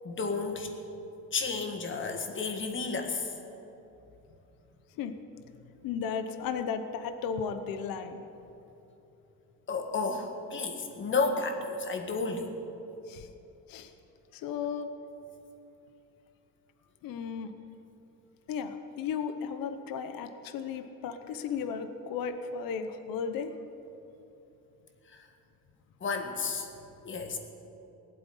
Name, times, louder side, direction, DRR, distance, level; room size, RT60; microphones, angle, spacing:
voice 1, 0.0-0.7 1.3-3.3 9.7-12.5 25.1-25.3 26.0-26.7 27.0-27.4, left 4 dB, 35° left, 5 dB, 1.7 m, -32 dB
voice 2, 5.8-8.2 13.1-13.3 13.7-13.9 14.3-14.9 17.0-17.5 18.5-23.5, left 6 dB, 85° left, 9 dB, 1.0 m, -35 dB
18.5 x 7.8 x 10.0 m, 3.0 s
cardioid pair, 150°, 34 cm